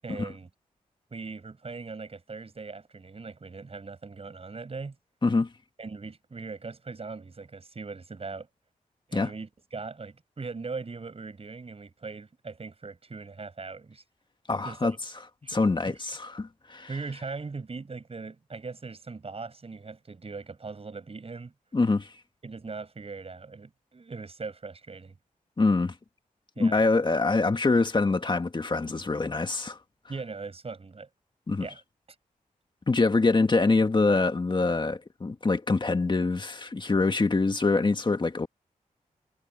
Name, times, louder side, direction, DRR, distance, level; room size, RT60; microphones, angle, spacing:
voice 1, 0.0-0.5 1.1-5.0 5.8-8.5 9.1-14.0 14.6-15.0 15.4-16.0 16.9-21.5 22.4-25.2 26.6-26.8 30.1-31.1 31.6-31.8, right 4 dB, 45° right, 7.4 m, -40 dB
voice 2, 14.5-14.9 15.5-16.9 21.7-22.1 25.6-25.9 26.6-29.8 31.5-31.7 32.9-38.5, left 3 dB, 35° left, 2.0 m, -24 dB
cardioid pair, 80°, 14 cm